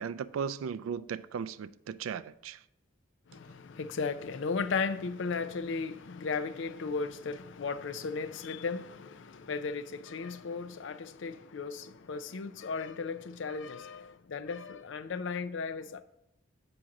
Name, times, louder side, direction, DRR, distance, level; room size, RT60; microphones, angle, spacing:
voice 1, 0.0-2.6, right 7 dB, 85° right, 0.3 m, -36 dB
voice 2, 3.3-16.0, left 4 dB, 65° left, 0.5 m, -36 dB
7.8 x 5.9 x 3.8 m
head